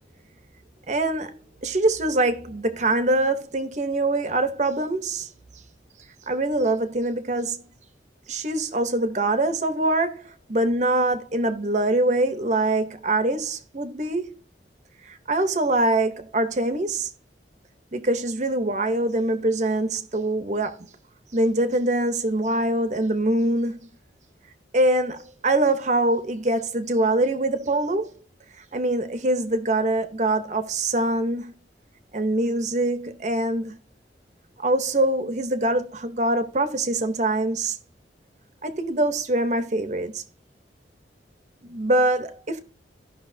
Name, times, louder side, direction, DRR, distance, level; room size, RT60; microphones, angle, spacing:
voice 1, 0.9-5.3 6.3-7.6 8.3-14.4 15.1-17.1 17.9-20.9 21.3-23.8 24.7-28.1 28.7-31.5 32.1-33.7 34.6-37.8 38.6-40.2 41.6-42.6, right 2 dB, 40° right, 0.8 m, -24 dB
15.0 x 5.7 x 2.7 m
head